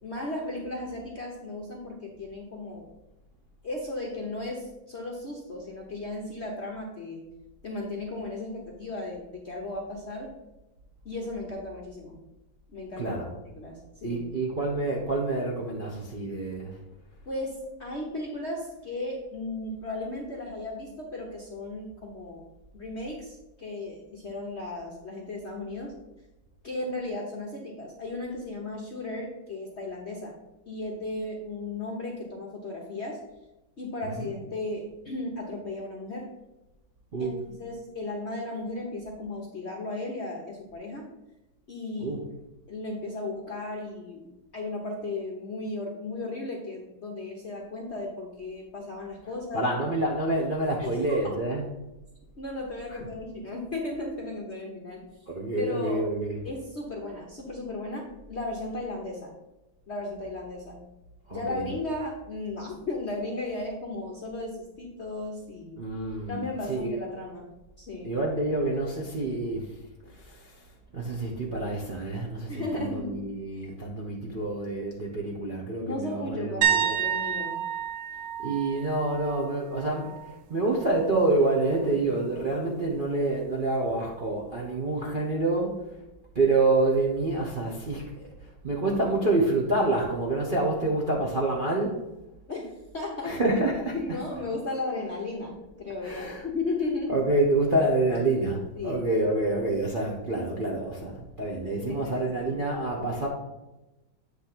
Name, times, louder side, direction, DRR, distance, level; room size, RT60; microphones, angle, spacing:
voice 1, 0.0-2.9 3.6-7.3 7.6-10.3 11.0-12.2 12.7-13.2 13.5-14.2 17.3-22.4 22.7-25.9 26.6-30.4 30.7-33.2 33.8-36.3 37.2-37.3 37.6-41.1 41.7-42.2 42.7-49.6 50.8-50.9 51.3-51.4 52.4-55.1 55.6-56.1 56.4-59.3 59.9-60.8 61.3-65.8 66.3-67.5 67.8-68.2 72.5-73.2 75.8-77.7 92.5-93.6 93.9-97.2 98.8-99.1 101.7-102.5, left 2 dB, 50° left, -1 dB, 0.9 m, -35 dB
voice 2, 13.0-13.3 14.0-16.8 34.2-34.3 37.1-37.3 42.0-42.2 49.5-51.6 55.3-56.4 61.3-61.7 65.8-66.4 66.7-67.0 68.0-69.7 70.1-70.5 70.9-77.0 78.4-85.8 86.3-88.0 88.6-92.0 93.2-93.9 96.0-96.4 97.1-103.3, right 2 dB, 40° right, -3 dB, 0.8 m, -27 dB
sound 1, 76.6-80.4 80.7-81.0 83.9-84.0, right 8 dB, 75° right, 0.9 m, -30 dB
8.3 x 3.4 x 5.9 m, 0.99 s
omnidirectional pair, 2.2 m